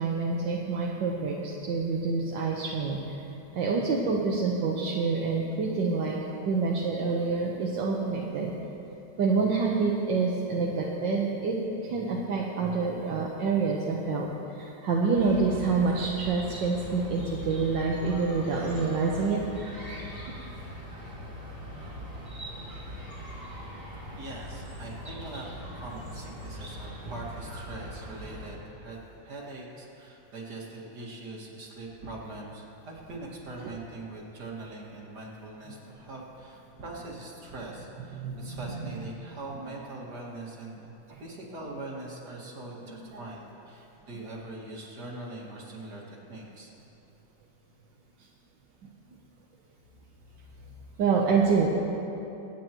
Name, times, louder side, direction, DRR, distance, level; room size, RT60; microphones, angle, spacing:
voice 1, 0.0-3.2 3.5-6.2 6.4-8.5 9.2-11.6 11.8-19.4 33.6-33.7 38.1-38.9 41.1-41.2 42.8-43.2 51.0-51.7, right 4 dB, 80° right, -3 dB, 1.7 m, -27 dB
Chirp tweet, 15.1-28.5, equal, 20° right, 2.0 m, -41 dB
voice 2, 24.1-29.0 29.2-40.9 41.2-46.7, right 2 dB, 65° right, -4 dB, 2.7 m, -42 dB
25.5 x 9.3 x 3.0 m, 2.9 s
omnidirectional pair, 2.0 m